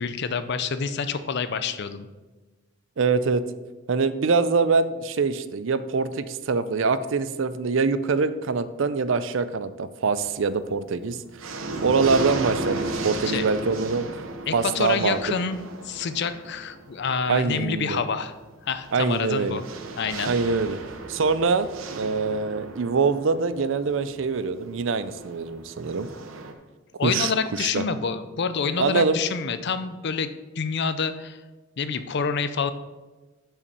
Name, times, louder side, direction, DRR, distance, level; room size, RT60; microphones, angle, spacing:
voice 1, 0.0-2.1 13.2-13.5 14.5-15.6 15.8-18.3 18.6-19.6 20.0-20.4 27.0-30.3 30.6-31.4 31.8-32.7, left 5 dB, 55° left, 12 dB, 0.5 m, -27 dB
voice 2, 3.0-3.4 3.9-11.2 11.5-14.1 14.5-15.2 17.3-18.0 18.9-19.6 20.2-20.8 21.1-21.7 21.9-26.1 27.0-27.3 27.6-27.8 28.8-29.2, right 4 dB, 65° right, 13 dB, 0.5 m, -24 dB
sound 1, 10.2-10.7 11.1-26.5, right 2 dB, 90° right, 0.9 m, -35 dB
6.9 x 5.8 x 6.7 m, 1.2 s
head